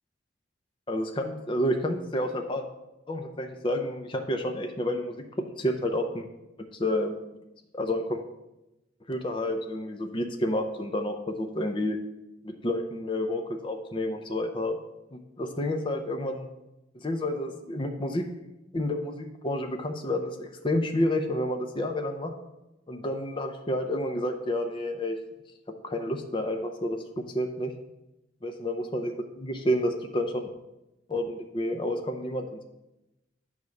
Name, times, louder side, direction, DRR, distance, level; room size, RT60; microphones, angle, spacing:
voice 1, 0.9-2.7 3.1-5.2 5.6-6.3 6.7-7.1 7.7-8.2 9.1-12.0 12.4-14.8 15.1-16.5 16.9-18.2 18.7-22.3 22.9-25.2 25.7-27.7 28.4-30.5 31.1-32.6, left 1 dB, 25° left, 4 dB, 0.6 m, -30 dB
9.4 x 3.5 x 6.4 m, 0.95 s
head